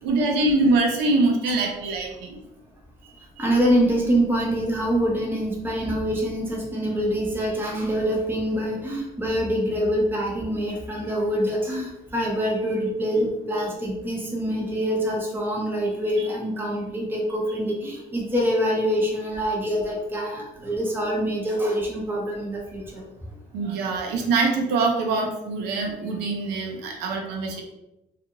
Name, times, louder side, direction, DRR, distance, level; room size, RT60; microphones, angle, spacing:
voice 1, 0.0-2.4 3.0-3.4 13.1-13.2 23.5-27.6, right 3 dB, 85° right, 2 dB, 0.5 m, -24 dB
voice 2, 3.4-23.0 26.9-27.0, equal, 10° right, -2 dB, 0.8 m, -25 dB
2.4 x 2.4 x 2.8 m, 0.91 s
cardioid pair, 110°, 17 cm